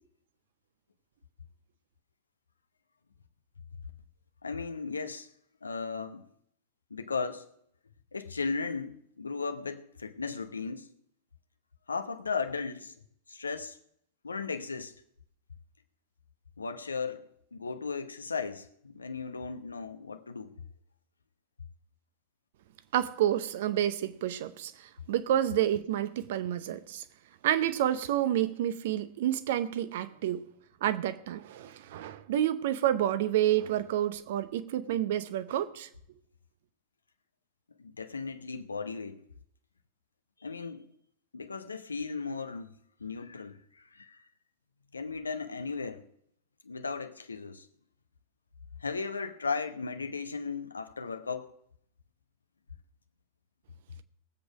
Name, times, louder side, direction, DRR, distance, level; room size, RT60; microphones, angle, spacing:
voice 1, 4.4-5.3 5.6-6.3 6.9-7.5 8.1-10.9 11.9-12.9 13.3-13.8 14.2-14.9 16.6-20.5 37.8-39.2 40.4-40.8 41.3-42.7 43.0-44.3 44.9-46.0 46.6-47.7 48.8-51.5, left 4 dB, 75° left, 1.0 m, -36 dB
voice 2, 22.9-27.0 27.4-30.4 30.8-35.9, right 11 dB, 55° right, 0.8 m, -29 dB
19.5 x 8.1 x 5.0 m
figure-of-eight pair, 90°, 0 cm